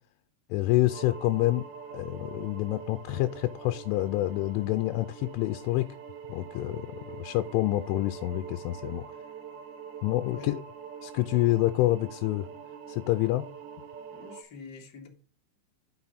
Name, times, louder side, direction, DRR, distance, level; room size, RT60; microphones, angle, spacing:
voice 1, 0.5-1.6 1.9-5.9 6.3-9.1 10.0-10.6 11.0-12.5 12.9-13.4, left 17 dB, 85° left, 3.0 m, -27 dB
sound 1, 0.9-14.4, right 6 dB, 80° right, 1.8 m, -44 dB
voice 2, 14.1-15.1, left 5 dB, 35° left, 1.6 m, -45 dB
11.5 x 5.8 x 4.1 m
omnidirectional pair, 5.6 m